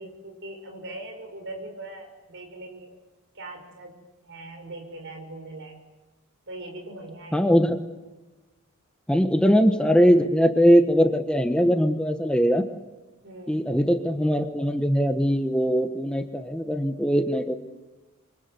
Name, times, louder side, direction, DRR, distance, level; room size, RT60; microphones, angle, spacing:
voice 1, 0.0-2.9 3.3-3.9 4.2-5.8 6.5-7.5 13.2-13.6, right 2 dB, 60° right, 4 dB, 6.2 m, -40 dB
voice 2, 7.3-7.8 9.1-12.7 13.5-17.5, equal, 5° left, 6 dB, 1.2 m, -21 dB
28.5 x 24.0 x 8.1 m, 1.1 s
head